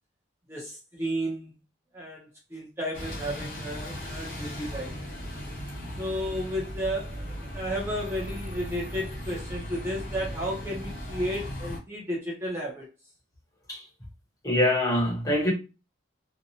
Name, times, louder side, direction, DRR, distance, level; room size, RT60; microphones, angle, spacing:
voice 1, 0.5-1.5 1.9-5.0 6.0-12.9, equal, 15° right, 0.6 m, -33 dB
Bus, 2.9-11.8, equal, 45° left, 1.1 m, -37 dB
voice 2, 14.4-15.5, left 1 dB, 20° left, 0.9 m, -24 dB
2.7 x 2.1 x 2.7 m
head